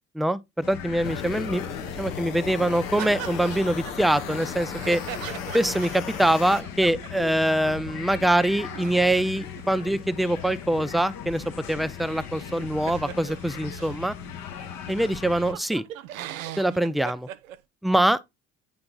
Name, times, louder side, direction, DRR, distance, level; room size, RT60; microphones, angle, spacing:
voice 1, 0.1-1.6 2.0-5.0 5.5-14.1 14.9-15.8 16.6-17.3 17.8-18.2, right 1 dB, ahead, 0.4 m, -24 dB
sound 1, 0.6-15.5, left 7 dB, 60° left, 1.3 m, -38 dB
sound 2, 1.0-6.6, left 7 dB, 80° left, 1.1 m, -36 dB
sound 3, 3.0-7.8 8.1-8.2 8.4-14.1 14.6-14.7 15.0-17.6, right 12 dB, 85° right, 0.6 m, -40 dB
8.7 x 3.6 x 3.8 m
hypercardioid pair, 60°, 39 cm